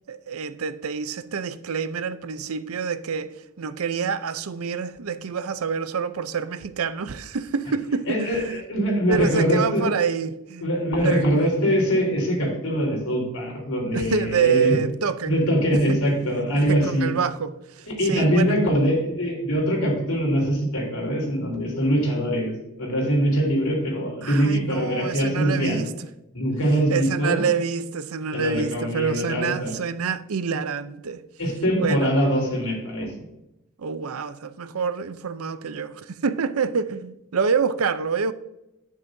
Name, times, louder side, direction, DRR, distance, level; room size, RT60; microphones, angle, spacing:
voice 1, 0.1-8.6 9.1-10.7 11.0-11.5 13.9-15.4 15.9-16.0 16.6-18.5 24.2-25.9 26.9-31.2 31.8-32.1 33.8-38.3, right 6 dB, 85° right, 0.6 m, -27 dB
voice 2, 8.1-9.9 10.6-14.8 15.3-17.1 17.9-25.9 26.3-27.4 28.3-29.7 31.4-33.1, equal, 80° left, 3.8 m, -23 dB
10.5 x 9.3 x 2.7 m
head